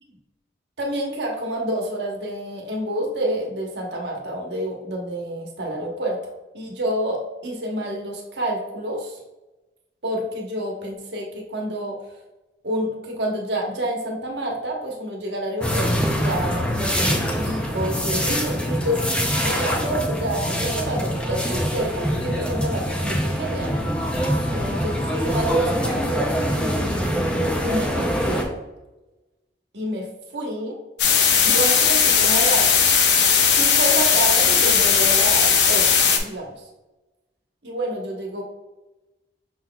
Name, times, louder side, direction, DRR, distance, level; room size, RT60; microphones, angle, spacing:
voice 1, 0.8-6.2 6.5-9.2 10.0-12.0 12.6-23.7 24.5-28.5 29.7-30.8 31.4-32.7 33.5-36.5 37.6-38.4, right 1 dB, 75° right, 0 dB, 1.1 m, -28 dB
sound 1, 15.6-28.4, equal, 5° left, 0.5 m, -24 dB
sound 2, 31.0-36.2, left 6 dB, 80° left, 0.7 m, -17 dB
5.9 x 3.9 x 2.3 m, 1.1 s
head